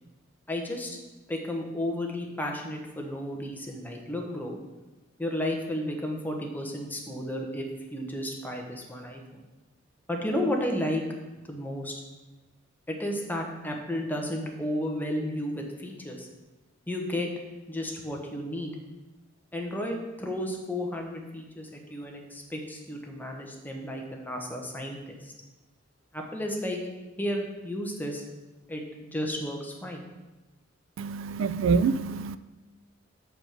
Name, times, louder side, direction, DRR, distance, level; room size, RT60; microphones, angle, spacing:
voice 1, 0.5-1.0 1.3-4.6 5.2-7.7 7.9-9.4 10.1-11.0 11.5-11.9 12.9-16.3 16.9-17.3 17.7-18.7 19.5-25.3 26.1-26.8 27.2-28.2 28.7-30.1, left 1 dB, 10° left, 1 dB, 1.1 m, -33 dB
voice 2, 31.0-32.4, right 5 dB, 70° right, 15 dB, 0.3 m, -26 dB
6.3 x 5.2 x 5.9 m, 1.1 s
head